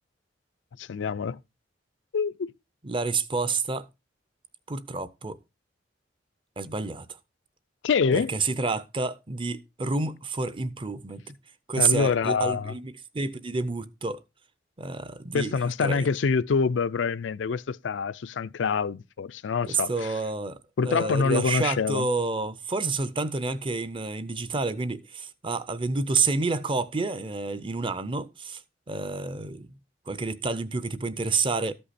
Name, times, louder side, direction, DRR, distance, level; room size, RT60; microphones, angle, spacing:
voice 1, 0.8-1.4 2.1-2.5 7.8-8.3 11.8-12.7 15.3-20.1 20.8-22.1, left 5 dB, 80° left, 0.4 m, -26 dB
voice 2, 2.8-3.9 4.7-5.4 6.6-7.1 8.1-11.3 11.7-14.2 14.8-15.5 15.8-16.1 19.7-20.6 20.8-28.6 28.9-29.8 30.1-31.7, right 3 dB, 30° right, 0.6 m, -29 dB
13.0 x 5.5 x 4.2 m
head